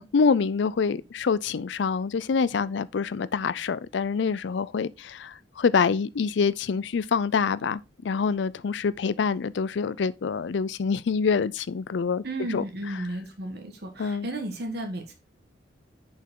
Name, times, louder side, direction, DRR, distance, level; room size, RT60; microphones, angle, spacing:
voice 1, 0.1-12.2 12.5-12.6 14.0-14.3, left 5 dB, 65° left, 0.4 m, -26 dB
voice 2, 12.2-15.1, right 1 dB, 55° right, 1.5 m, -33 dB
6.8 x 5.4 x 3.7 m
head